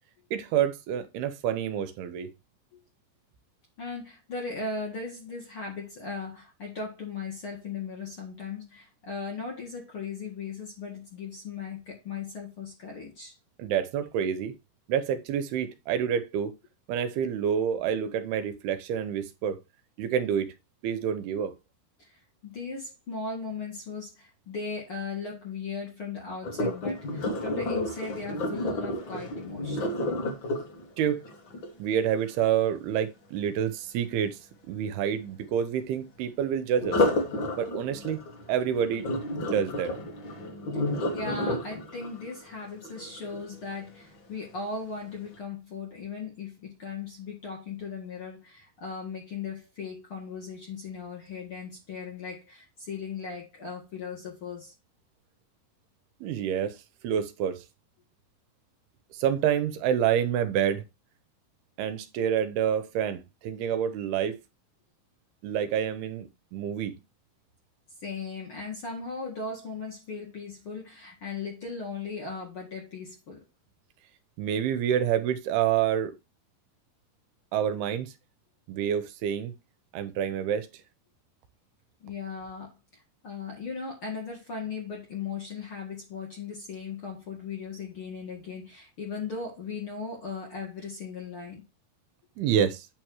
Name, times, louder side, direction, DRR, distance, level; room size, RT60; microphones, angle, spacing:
voice 1, 0.3-2.3 13.6-14.5 14.9-16.5 16.9-19.6 20.0-20.5 20.8-21.5 31.0-31.2 31.8-34.4 34.7-37.0 37.6-38.2 38.5-39.1 39.4-40.0 56.2-56.8 57.0-57.6 59.1-60.8 61.8-64.4 65.4-67.0 74.4-76.1 77.5-78.1 78.7-79.6 79.9-80.7 92.4-92.9, right 9 dB, 80° right, 2.6 m, -28 dB
voice 2, 3.8-13.3 22.0-22.2 22.4-29.9 41.1-54.7 68.0-73.4 82.0-91.6, left 4 dB, 45° left, 1.9 m, -38 dB
Sink (filling or washing), 26.4-32.4 36.8-43.8 44.3-44.6 45.1-45.2, left 1 dB, 75° left, 1.1 m, -31 dB
8.9 x 3.1 x 6.2 m
omnidirectional pair, 4.7 m